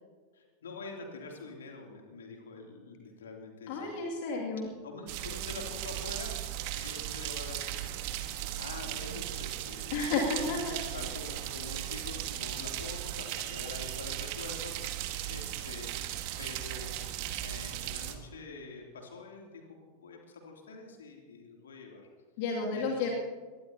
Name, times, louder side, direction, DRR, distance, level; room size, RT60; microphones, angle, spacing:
voice 1, 0.3-3.9 4.8-8.1 8.6-15.9 16.4-17.0 17.4-22.1 22.7-23.1, left 3 dB, 65° left, 1 dB, 2.9 m, -46 dB
voice 2, 3.7-4.7 9.9-10.8 22.4-23.1, left 4 dB, 50° left, 0 dB, 2.4 m, -31 dB
sound 1, 5.1-18.1, right 13 dB, 45° right, 1.3 m, -37 dB
23.0 x 19.0 x 2.9 m, 1.5 s
figure-of-eight pair, 90°, 0 cm